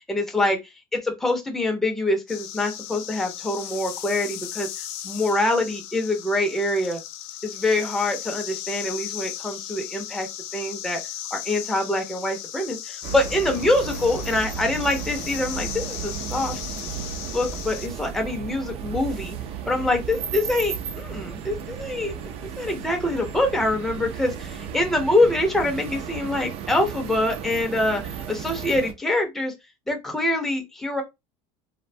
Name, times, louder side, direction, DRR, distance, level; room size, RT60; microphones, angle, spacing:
voice 1, 0.1-0.6 0.9-4.7 5.0-7.0 7.4-10.3 10.5-11.0 11.3-16.6 17.3-19.4 19.7-22.1 22.6-29.5 29.9-31.0, left 2 dB, ahead, 0.5 m, -25 dB
sound 1, 2.3-17.9, left 12 dB, 75° left, 0.4 m, -36 dB
sound 2, 13.0-28.9, right 7 dB, 45° right, 0.4 m, -34 dB
2.6 x 2.1 x 2.6 m
supercardioid pair, 130°, 14 cm